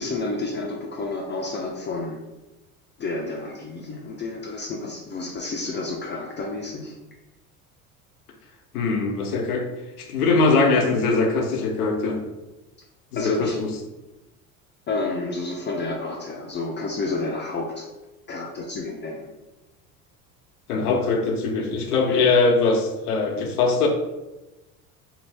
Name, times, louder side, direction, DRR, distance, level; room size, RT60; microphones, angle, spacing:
voice 1, 0.0-2.2 3.0-6.9 13.2-13.6 14.9-17.9 18.3-19.3 22.1-22.3, left 3 dB, 25° left, 0 dB, 0.4 m, -30 dB
voice 2, 8.7-9.7 10.0-12.2 13.1-13.7 20.7-23.9, left 3 dB, 85° left, 2 dB, 0.7 m, -21 dB
2.7 x 2.6 x 3.2 m, 1.0 s
hypercardioid pair, 75°, 44 cm